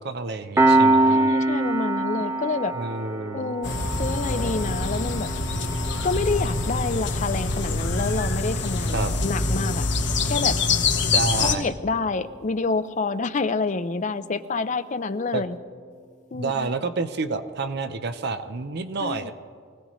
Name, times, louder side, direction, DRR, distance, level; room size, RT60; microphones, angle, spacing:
voice 1, 0.0-1.3 2.7-3.6 8.9-9.1 11.1-11.7 15.3-15.4 16.3-19.3, right 4 dB, 55° right, 10 dB, 0.6 m, -29 dB
Piano, 0.6-11.6, right 2 dB, 15° right, 0.7 m, -26 dB
voice 2, 1.1-2.7 3.3-3.7 4.0-5.3 6.0-9.9 10.2-10.6 11.4-15.6 16.3-16.7 19.0-19.3, left 4 dB, 40° left, 11 dB, 0.5 m, -28 dB
sound 1, 3.6-11.5, left 3 dB, 60° left, 1.2 m, -25 dB
24.0 x 16.5 x 3.1 m, 2.1 s
head